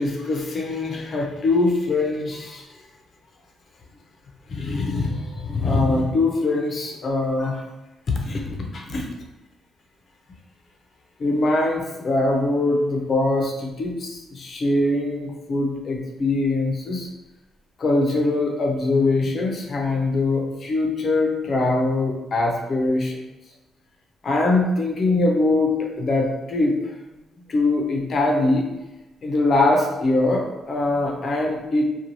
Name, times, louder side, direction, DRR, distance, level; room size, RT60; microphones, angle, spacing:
voice 1, 0.0-2.6 4.5-7.6 8.1-9.0 11.2-17.1 17.8-23.1 24.2-26.7 27.5-28.6 29.2-31.8, left 2 dB, 50° left, 1 dB, 0.6 m, -22 dB
2.5 x 2.3 x 3.0 m, 1.0 s
cardioid pair, 90°, 0 cm